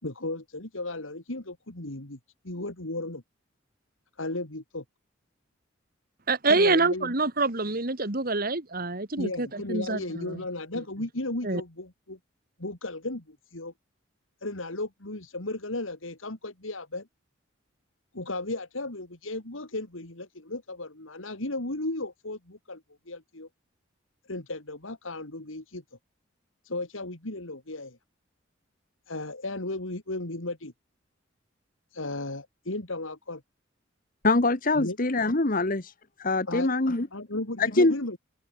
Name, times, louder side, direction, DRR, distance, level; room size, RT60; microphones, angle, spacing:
voice 1, 0.0-2.2 2.4-3.2 4.2-4.8 6.5-7.1 9.2-12.2 12.6-13.7 14.4-17.1 18.1-23.5 24.2-25.8 26.6-28.0 29.1-30.7 31.9-33.4 34.8-35.0 36.5-36.7 37.1-38.2, left 2 dB, 85° left, 3.3 m, -35 dB
voice 2, 6.3-10.4 11.4-11.6, right 3 dB, 45° right, 2.2 m, -26 dB
voice 3, 34.2-35.9 36.2-37.1 37.6-37.9, left 2 dB, 45° left, 1.4 m, -24 dB
head